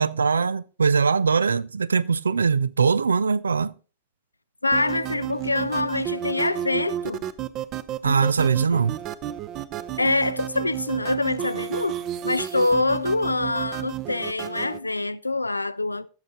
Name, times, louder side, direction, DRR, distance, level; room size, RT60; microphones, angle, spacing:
voice 1, 0.0-3.7 8.0-9.0, right 5 dB, 75° right, 0.4 m, -21 dB
voice 2, 4.6-7.2 10.0-12.0 12.2-16.1, left 2 dB, 85° left, 0.4 m, -25 dB
sound 1, 4.7-14.8, right 12 dB, 35° right, 0.6 m, -32 dB
14.0 x 6.5 x 3.8 m
figure-of-eight pair, 90°, 0 cm